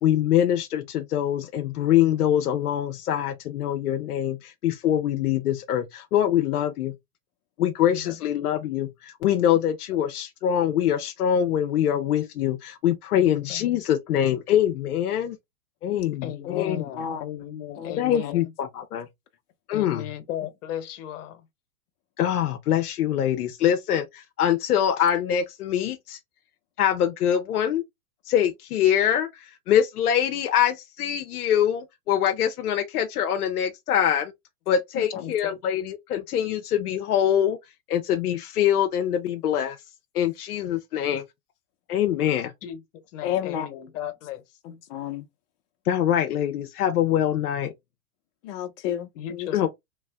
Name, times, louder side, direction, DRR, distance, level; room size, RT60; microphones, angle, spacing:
voice 1, 0.0-6.9 7.6-15.4 15.8-16.8 18.0-19.1 19.7-20.0 22.2-26.2 26.8-27.8 28.3-34.3 34.7-37.6 37.9-39.8 40.1-41.2 41.9-42.5 45.9-47.7 49.5-49.7, left 10 dB, 75° left, 0.8 m, -24 dB
voice 2, 13.1-13.8 16.2-18.5 19.7-21.5 35.1-35.6 42.6-44.4 49.1-49.6, left 10 dB, 55° left, 1.3 m, -36 dB
voice 3, 43.2-43.7 44.6-45.2 48.4-49.5, left 10 dB, 40° left, 0.9 m, -31 dB
3.2 x 3.1 x 3.5 m
hypercardioid pair, 120°, 45 cm